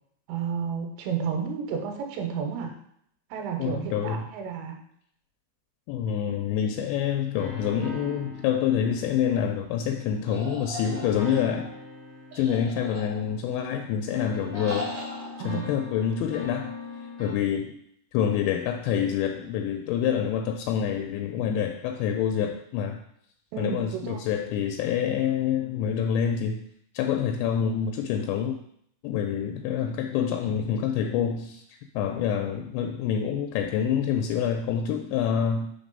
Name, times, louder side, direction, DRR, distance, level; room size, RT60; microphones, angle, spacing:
voice 1, 0.3-2.7 3.3-4.8 15.4-15.6 23.5-24.2, right 6 dB, 90° right, 4 dB, 3.0 m, -31 dB
voice 2, 3.6-4.3 5.9-11.7 12.4-14.9 15.4-16.7 17.2-17.7 18.1-23.0 23.6-26.6 26.9-28.6 29.0-31.6 32.0-35.7, left 8 dB, 85° left, 4 dB, 2.7 m, -27 dB
sound 1, 7.3-10.0 10.7-13.8 14.1-17.3, left 3 dB, 70° left, 0.9 m, -41 dB
sound 2, 10.3-11.6 12.3-13.5 14.5-15.3, left 1 dB, 60° right, 1.6 m, -38 dB
6.0 x 3.6 x 5.3 m, 0.69 s
omnidirectional pair, 5.1 m